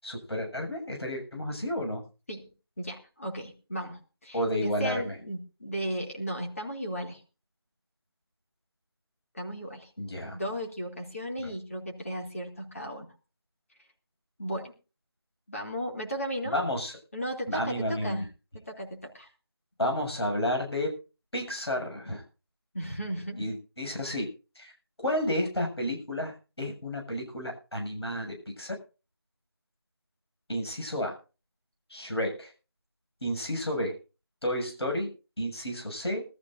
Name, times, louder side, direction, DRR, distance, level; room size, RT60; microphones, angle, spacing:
voice 1, 0.0-2.0 4.3-5.2 10.0-10.4 11.4-11.5 16.5-16.9 17.5-18.2 19.8-21.0 21.3-22.2 23.4-24.3 24.6-24.7 25.0-28.8 30.5-31.2 31.9-32.5 33.2-34.0 34.4-35.1 35.4-36.3, left 1 dB, 80° left, 1 dB, 7.3 m, -31 dB
voice 2, 2.8-7.2 9.3-9.9 10.3-13.1 14.4-14.7 15.5-16.6 17.1-18.3 18.7-19.3 22.7-23.5, equal, 35° left, 0 dB, 2.9 m, -35 dB
22.0 x 13.5 x 2.7 m, 0.34 s
figure-of-eight pair, 180°, 13 cm